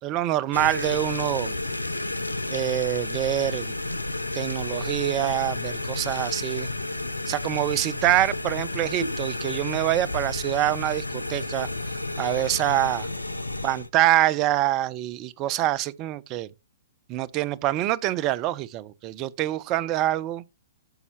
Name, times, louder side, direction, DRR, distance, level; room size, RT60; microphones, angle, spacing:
voice 1, 0.0-1.5 2.5-3.7 4.3-6.7 7.3-11.7 12.2-13.1 13.6-16.5 17.1-20.4, right 14 dB, 30° right, 0.5 m, -25 dB
sound 1, 0.5-13.9, left 2 dB, 90° left, 0.6 m, -31 dB
12.0 x 5.4 x 2.9 m
figure-of-eight pair, 115°, 0 cm